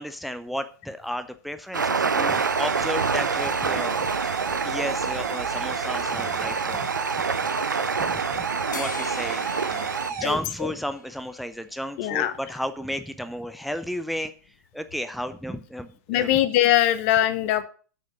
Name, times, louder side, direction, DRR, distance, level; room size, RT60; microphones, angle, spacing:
voice 1, 0.0-7.2 8.0-8.4 8.7-16.3, equal, ahead, 11 dB, 0.6 m, -33 dB
sound 1, 1.7-10.1, right 5 dB, 80° right, 0.6 m, -27 dB
sound 2, 2.3-10.3, right 6 dB, 55° right, 2.3 m, -32 dB
sound 3, 8.7-11.4, left 4 dB, 75° left, 1.3 m, -41 dB
voice 2, 10.2-10.7 12.0-12.3 16.1-17.6, left 13 dB, 45° left, 13 dB, 1.1 m, -22 dB
8.3 x 6.4 x 6.7 m, 0.41 s
figure-of-eight pair, 100°, 10 cm